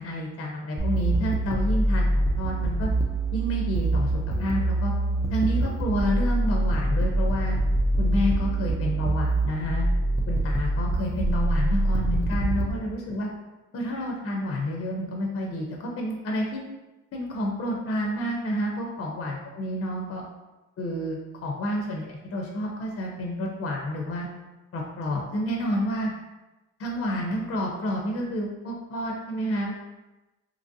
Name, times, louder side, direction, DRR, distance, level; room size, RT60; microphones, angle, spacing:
voice 1, 0.0-2.9 3.3-4.9 5.3-7.6 8.0-9.9 10.3-13.3 13.7-16.6 17.1-20.2 20.8-24.3 24.7-26.1 26.8-29.7, left 1 dB, 50° left, 0 dB, 0.5 m, -29 dB
sound 1, 0.8-12.7, right 2 dB, 10° right, 0.3 m, -25 dB
2.8 x 2.6 x 2.6 m, 1.0 s
cardioid pair, 90°, 30 cm